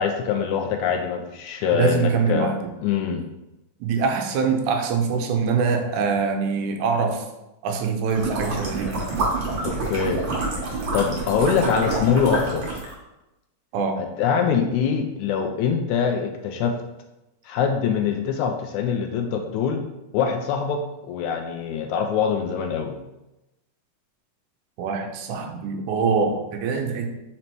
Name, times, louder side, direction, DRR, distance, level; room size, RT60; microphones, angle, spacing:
voice 1, 0.0-2.5 2.8-3.2 9.6-10.2 10.9-12.7 14.0-16.7 17.5-19.8 20.1-20.8 21.1-22.9, left 6 dB, 80° left, 4 dB, 1.8 m, -23 dB
voice 2, 1.7-2.7 3.8-7.2 7.6-8.9 13.7-14.0 24.8-27.1, right 5 dB, 75° right, 4 dB, 2.1 m, -24 dB
sound 1, 8.1-12.9, right 2 dB, 50° right, 1.7 m, -27 dB
5.2 x 4.3 x 4.5 m, 0.95 s
omnidirectional pair, 3.7 m